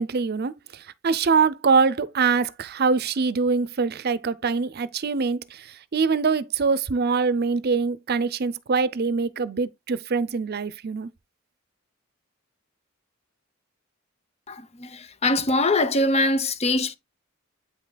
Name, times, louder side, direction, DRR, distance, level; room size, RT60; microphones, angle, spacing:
voice 1, 0.0-5.7 5.9-11.1, right 5 dB, 50° right, 0.6 m, -24 dB
voice 2, 14.5-17.0, left 2 dB, 30° left, 0.7 m, -23 dB
8.7 x 5.7 x 2.3 m
head